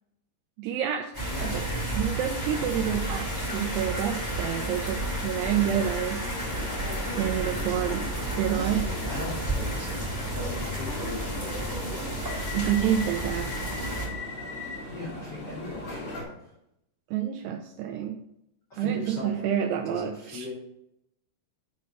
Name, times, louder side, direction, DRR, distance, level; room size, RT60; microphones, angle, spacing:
voice 1, 0.6-1.1 1.4-1.6 2.0-6.2 7.2-8.9 12.5-13.6 17.1-18.2 18.8-20.5, right 10 dB, 85° right, 2 dB, 2.5 m, -28 dB
sound 1, 1.1-14.1, right 1 dB, 10° left, 1.3 m, -32 dB
voice 2, 1.2-1.7 9.1-12.0 14.9-16.5 18.7-19.6 19.8-20.5, left 2 dB, 75° left, -6 dB, 0.9 m, -39 dB
sound 2, 6.3-16.2, left 1 dB, 50° left, 1.8 m, -38 dB
7.9 x 3.2 x 5.7 m, 0.79 s
omnidirectional pair, 5.1 m